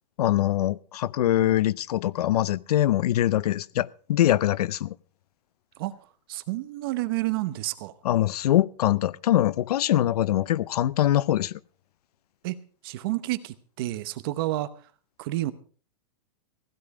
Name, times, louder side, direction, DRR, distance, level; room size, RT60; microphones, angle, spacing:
voice 1, 0.2-4.9 8.0-11.5, left 13 dB, 65° left, 0.6 m, -23 dB
voice 2, 6.3-7.9 12.4-14.7 15.2-15.5, right 17 dB, 35° right, 0.9 m, -30 dB
16.0 x 12.5 x 4.8 m
supercardioid pair, 175°, 21 cm